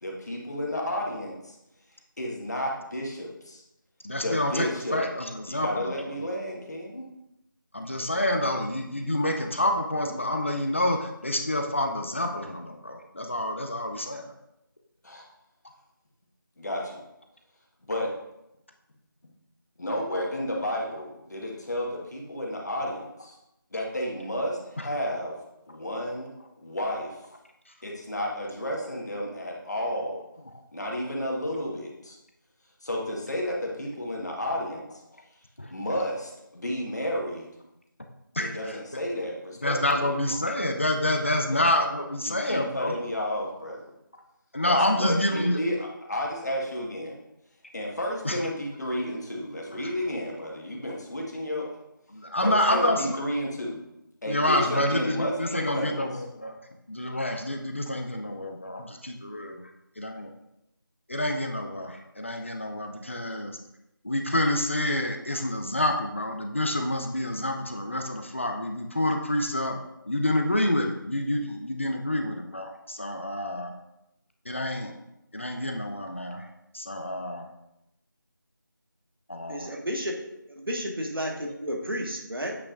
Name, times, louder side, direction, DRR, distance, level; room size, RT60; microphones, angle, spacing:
voice 1, 0.0-1.6 2.2-3.6 4.2-5.0 5.5-7.0 15.0-15.2 16.6-17.0 17.9-18.1 19.8-23.4 23.7-25.4 25.7-26.3 26.6-27.2 27.8-30.2 30.7-32.2 32.8-34.8 35.7-37.5 38.4-40.1 42.2-43.9 44.6-47.2 47.7-51.7 52.4-53.8 54.2-56.2, left 1 dB, 50° left, -2 dB, 1.5 m, -32 dB
voice 2, 4.0-5.9 7.7-14.3 24.8-24.9 35.6-35.7 38.4-38.8 39.6-42.9 44.5-45.6 48.2-48.4 52.1-53.2 54.3-56.6 56.9-59.6 60.0-60.3 61.1-63.6 64.0-69.8 70.1-73.7 74.5-74.9 75.3-76.5 76.7-77.5 79.3-79.8, left 1 dB, 35° left, 4 dB, 0.5 m, -28 dB
voice 3, 79.5-80.1 80.5-82.6, equal, 90° right, 0 dB, 1.6 m, -32 dB
8.2 x 5.4 x 2.5 m, 0.86 s
figure-of-eight pair, 175°, 12 cm